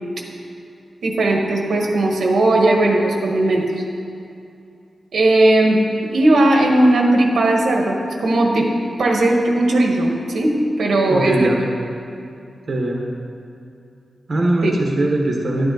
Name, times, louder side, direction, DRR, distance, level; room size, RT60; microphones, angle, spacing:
voice 1, 1.0-3.6 5.1-5.8 6.1-8.7 9.0-11.5 14.6-14.8, right 1 dB, 80° right, 0 dB, 1.4 m, -17 dB
voice 2, 11.1-11.6 12.7-13.0 14.3-15.7, right 1 dB, 45° right, 0 dB, 1.2 m, -20 dB
11.5 x 9.5 x 3.9 m, 2.5 s
wide cardioid pair, 150°, 0 cm